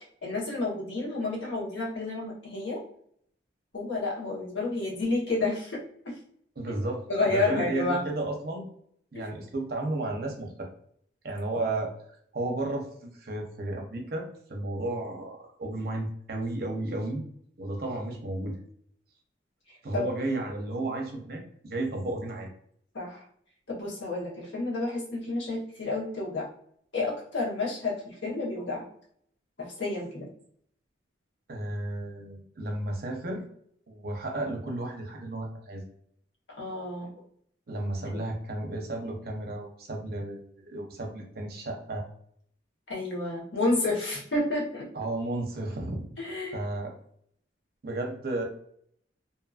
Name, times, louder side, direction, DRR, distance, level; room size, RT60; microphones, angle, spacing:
voice 1, 0.2-2.8 3.7-5.8 6.0-6.2 7.1-8.0 9.1-9.3 11.5-11.6 19.9-20.0 22.9-23.2 23.7-26.5 26.9-28.9 29.6-30.3 36.6-37.1 38.1-38.2 42.9-44.9 46.2-46.6, left 2 dB, 75° left, -4 dB, 1.0 m, -30 dB
voice 2, 6.6-7.1 7.3-8.7 9.1-10.7 11.2-11.9 12.3-17.2 17.6-18.6 19.8-22.5 31.5-33.4 33.9-35.8 37.7-42.1 44.9-46.0 46.5-46.9 47.8-48.4, right 2 dB, 55° right, 1 dB, 0.6 m, -33 dB
2.7 x 2.5 x 2.4 m, 0.66 s
head